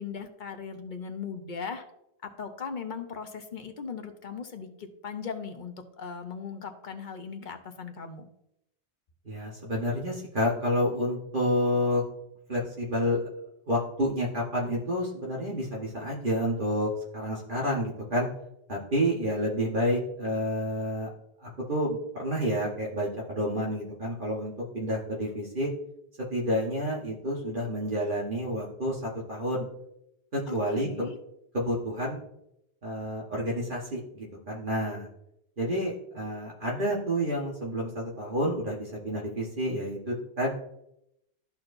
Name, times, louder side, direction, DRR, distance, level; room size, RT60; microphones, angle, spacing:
voice 1, 0.0-1.9 2.2-8.3 30.5-31.2, left 6 dB, 50° left, 7 dB, 0.9 m, -38 dB
voice 2, 9.2-12.0 12.5-13.2 13.7-18.3 18.7-21.1 21.4-25.7 26.3-29.6 30.3-31.1 31.5-32.2 32.8-35.1 35.6-40.5, equal, 50° right, -4 dB, 1.4 m, -29 dB
13.0 x 4.4 x 2.6 m, 0.80 s
omnidirectional pair, 1.1 m